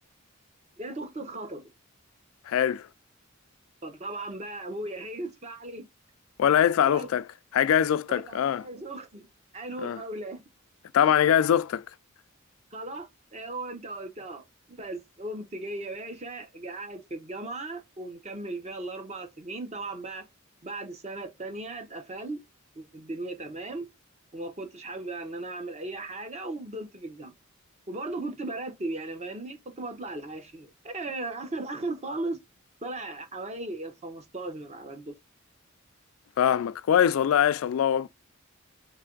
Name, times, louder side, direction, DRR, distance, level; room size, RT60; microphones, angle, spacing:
voice 1, 0.8-1.7 3.8-5.8 6.8-7.1 8.1-9.3 9.5-10.4 12.7-20.3 20.6-22.4 22.8-23.9 24.3-27.3 27.9-32.4 32.8-35.1, right 2 dB, 30° right, 0.8 m, -37 dB
voice 2, 2.5-2.9 6.4-7.2 7.5-8.7 9.8-10.0 10.9-11.8 36.4-38.1, left 9 dB, 75° left, 0.3 m, -23 dB
3.3 x 3.3 x 3.8 m
head